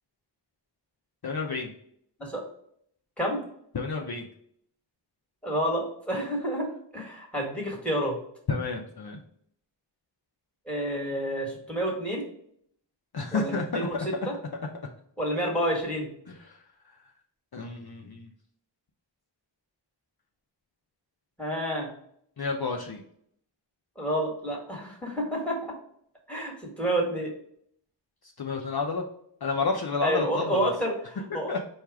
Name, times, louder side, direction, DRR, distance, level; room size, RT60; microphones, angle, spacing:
voice 1, 1.2-1.7 3.7-4.2 8.5-9.2 13.1-14.1 16.3-16.6 17.5-18.3 22.4-23.0 28.4-29.0 29.4-30.7 31.3-31.6, left 4 dB, 55° left, 1 dB, 0.6 m, -30 dB
voice 2, 5.4-6.7 6.9-8.2 10.7-12.3 13.3-14.3 15.2-16.1 21.4-21.9 24.0-25.6 26.3-27.3 30.0-31.6, equal, 5° left, -2 dB, 1.4 m, -29 dB
4.4 x 2.4 x 4.7 m, 0.67 s
wide cardioid pair, 50°, 44 cm